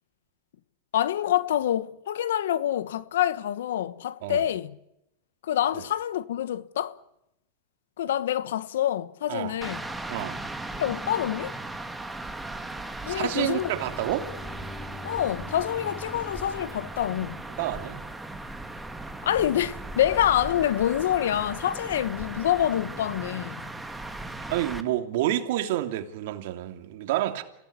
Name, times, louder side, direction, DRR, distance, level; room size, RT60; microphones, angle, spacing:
voice 1, 0.9-4.7 5.4-7.0 8.0-9.8 10.8-11.6 13.0-13.7 15.0-17.4 19.2-23.6, left 11 dB, 85° left, 1.2 m, -26 dB
sound 1, 9.6-24.8, right 2 dB, 5° right, 1.6 m, -37 dB
Bowed string instrument, 13.0-18.0, left 2 dB, 25° left, 4.9 m, -46 dB
voice 2, 13.0-14.3 17.6-18.0 24.5-27.4, right 13 dB, 65° right, 2.8 m, -29 dB
27.5 x 16.5 x 9.9 m
supercardioid pair, 140°, 0 cm